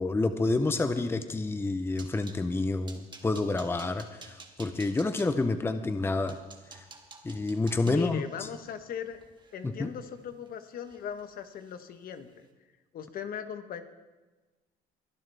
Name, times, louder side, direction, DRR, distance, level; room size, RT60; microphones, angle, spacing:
voice 1, 0.0-6.4 6.7-6.8 7.2-8.5 9.6-9.9, left 3 dB, 15° left, 9 dB, 0.7 m, -29 dB
sound 1, 1.5-2.4 2.9-5.3 5.9-6.0 6.3-10.5 10.8-11.3 11.5-11.7 12.1-12.3, right 4 dB, 25° right, 1.8 m, -51 dB
voice 2, 7.8-9.2 9.5-12.5 12.9-13.8, left 8 dB, 60° left, 9 dB, 1.2 m, -39 dB
22.5 x 11.5 x 3.5 m, 1.2 s
cardioid pair, 110°, 17 cm